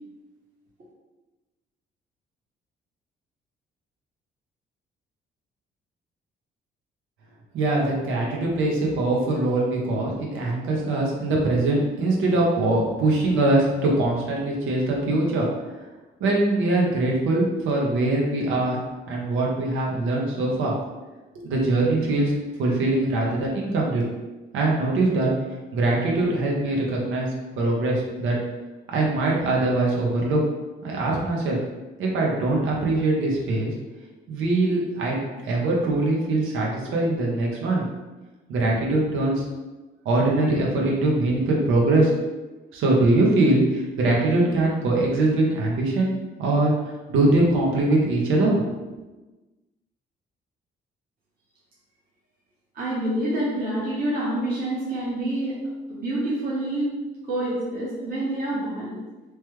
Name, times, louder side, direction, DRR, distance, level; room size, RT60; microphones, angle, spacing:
voice 1, 7.5-15.5 16.2-18.8 19.1-20.7 21.3-22.3 22.6-24.0 24.5-25.3 25.7-27.3 27.6-28.4 28.9-30.4 30.8-31.6 32.0-33.7 34.3-37.8 38.5-39.4 40.0-42.1 42.7-46.1 46.4-48.7, right 2 dB, 85° right, -2 dB, 0.8 m, -22 dB
voice 2, 52.7-55.6 55.9-56.9 57.3-59.0, right 1 dB, 50° right, -7 dB, 0.9 m, -27 dB
3.1 x 2.2 x 3.1 m, 1.1 s
cardioid pair, 90°, 20 cm